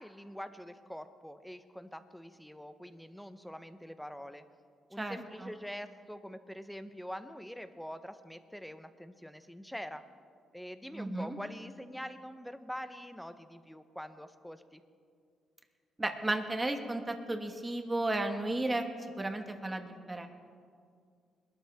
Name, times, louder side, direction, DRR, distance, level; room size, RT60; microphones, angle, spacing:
voice 1, 0.0-4.4 4.9-10.0 10.5-14.8, equal, 5° left, 10 dB, 0.8 m, -45 dB
voice 2, 5.0-5.5 10.9-11.4 16.0-18.9 19.2-20.3, right 2 dB, 20° right, 5 dB, 1.5 m, -34 dB
21.5 x 12.5 x 3.5 m, 2.2 s
cardioid pair, 90°, 0 cm